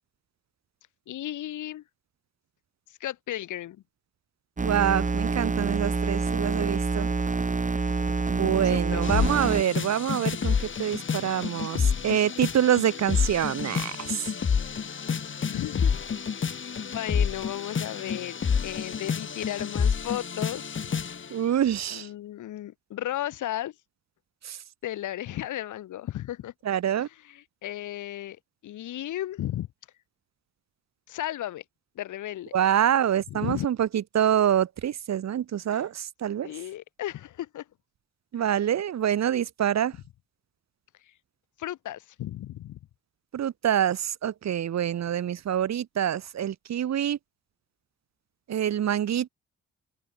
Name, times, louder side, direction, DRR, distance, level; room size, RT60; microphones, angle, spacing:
voice 1, 1.1-1.8 2.9-3.8 8.4-9.0 15.5-16.0 16.8-21.0 21.9-23.8 24.8-26.5 27.2-29.7 31.1-31.6 32.0-32.5 33.3-33.7 35.7-35.8 36.4-37.7 38.4-38.5 41.0-41.1 41.6-42.8, left 13 dB, 80° left, 5.3 m, -35 dB
sound 1, 4.6-9.6, right 4 dB, 25° right, 3.8 m, -27 dB
voice 2, 4.6-7.1 8.3-14.3 21.3-22.1 24.4-24.6 26.6-27.1 32.5-36.5 38.3-40.0 43.3-47.2 48.5-49.3, right 10 dB, 60° right, 3.0 m, -26 dB
sound 2, 9.0-21.3, left 6 dB, 40° left, 2.8 m, -29 dB
open air
cardioid pair, 90°, 30 cm